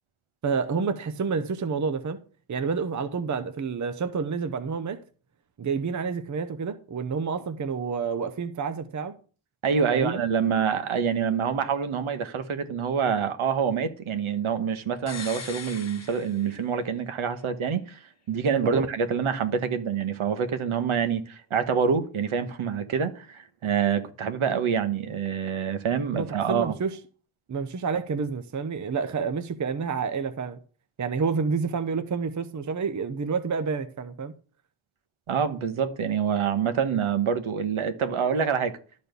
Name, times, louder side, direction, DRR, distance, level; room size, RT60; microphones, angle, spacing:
voice 1, 0.4-2.2 2.5-5.0 5.6-9.1 9.9-10.2 18.6-18.9 26.1-27.0 27.5-30.6 31.0-34.3, right 5 dB, 35° right, 0.7 m, -29 dB
voice 2, 9.6-18.0 18.3-26.7 35.3-38.8, right 7 dB, 75° right, 1.2 m, -26 dB
sound 1, 15.1-17.0 17.3-17.4, left 6 dB, 30° left, 1.0 m, -41 dB
12.5 x 4.3 x 6.7 m
wide cardioid pair, 180°, 49 cm